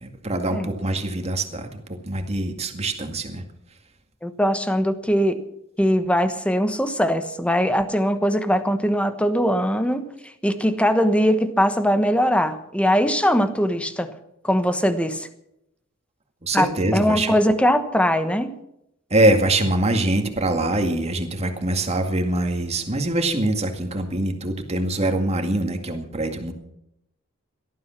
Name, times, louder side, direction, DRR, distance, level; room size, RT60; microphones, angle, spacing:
voice 1, 0.0-3.4 16.4-17.3 19.1-26.5, right 1 dB, 30° right, 5 dB, 2.2 m, -23 dB
voice 2, 4.2-5.4 5.8-10.1 10.4-14.1 14.4-15.3 16.5-18.5, equal, 5° left, 10 dB, 1.2 m, -21 dB
18.0 x 13.0 x 5.9 m, 0.82 s
head